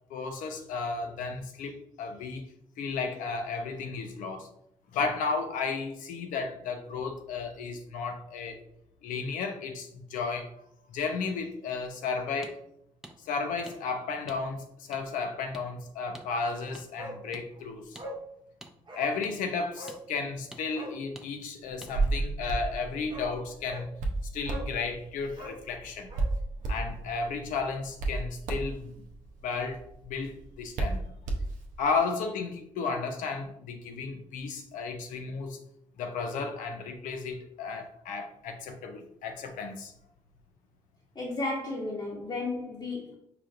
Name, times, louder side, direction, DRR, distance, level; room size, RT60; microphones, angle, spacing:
voice 1, 0.1-2.5 2.8-4.5 4.9-8.6 9.0-10.5 10.9-12.6 13.2-18.0 18.9-23.9 24.3-26.1 26.7-28.9 29.4-31.1 31.8-35.6 36.0-39.9, left 4 dB, 80° left, 6 dB, 0.5 m, -33 dB
sound 1, 12.4-12.5 13.0-13.2 13.7-13.8 14.3-14.4 14.9-15.0 15.5-15.7 16.1-16.3 16.7-16.8 17.3-17.5 17.9-18.1 18.6-18.7 19.2-19.4 19.9-20.0 20.5-20.6 21.2-21.3 21.8-21.9, right 1 dB, 5° right, 0.5 m, -47 dB
Bark, 17.0-17.2 17.5-17.6 18.0-18.2 18.9-19.1 19.8-20.0 20.7-21.0 22.6-22.7 23.1-23.3 23.7-23.9 24.5-24.8 25.3-26.3 26.6-26.7, equal, 35° right, 0.8 m, -42 dB
Hands, 21.7-31.9, right 2 dB, 80° right, 0.5 m, -34 dB
voice 2, 41.1-43.1, left 2 dB, 35° left, -5 dB, 1.0 m, -33 dB
4.9 x 2.5 x 2.4 m, 0.75 s
hypercardioid pair, 40°, 13 cm